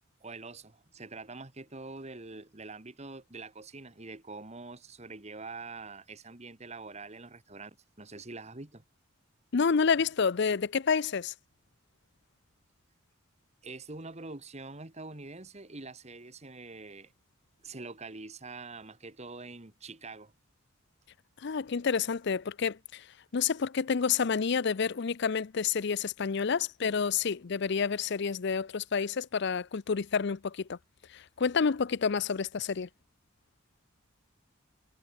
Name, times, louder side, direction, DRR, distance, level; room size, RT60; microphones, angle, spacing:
voice 1, 0.2-8.8 13.6-17.1 17.6-20.3, right 3 dB, 30° right, 1.7 m, -45 dB
voice 2, 9.5-11.3 21.4-23.1 23.3-30.8 31.1-32.9, left 6 dB, 55° left, 0.5 m, -29 dB
head